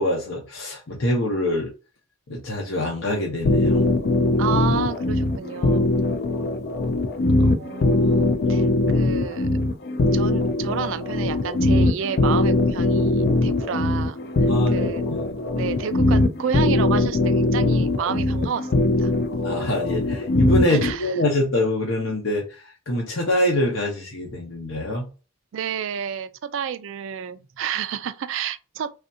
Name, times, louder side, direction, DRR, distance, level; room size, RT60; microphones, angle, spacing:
voice 1, 0.0-1.7 2.3-3.9 14.5-15.3 19.4-25.1, left 1 dB, 65° left, 0.9 m, -25 dB
sound 1, 3.4-20.9, left 2 dB, 50° left, 0.4 m, -21 dB
voice 2, 4.4-5.9 7.4-9.5 10.1-15.0 15.5-18.7 19.0-19.1 20.7-21.1 25.5-28.9, right 7 dB, 65° right, 0.3 m, -30 dB
3.3 x 2.5 x 2.7 m
head